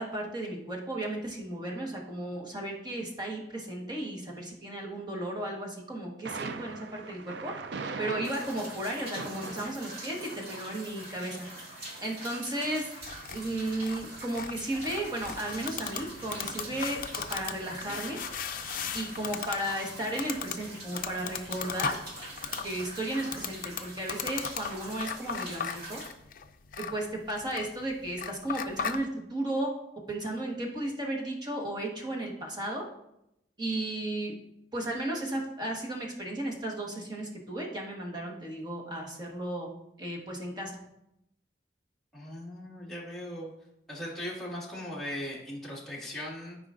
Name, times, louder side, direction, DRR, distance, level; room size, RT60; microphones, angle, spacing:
voice 1, 0.0-7.5 8.0-11.5 12.0-12.9 13.3-17.0 17.3-18.2 18.9-21.9 22.6-26.0 26.8-29.7 30.1-32.8 33.6-34.3 34.7-39.7 40.0-40.8, right 1 dB, 25° right, -1 dB, 1.4 m, -34 dB
Thunder, 6.2-23.7, right 4 dB, 75° right, 0.5 m, -46 dB
sound 1, 8.2-26.1, right 1 dB, 55° right, 2.2 m, -44 dB
sound 2, 13.0-29.0, left 7 dB, 50° left, 0.5 m, -38 dB
voice 2, 42.1-43.5 43.9-46.6, left 1 dB, ahead, -7 dB, 2.1 m, -38 dB
13.0 x 5.0 x 2.6 m, 0.82 s
head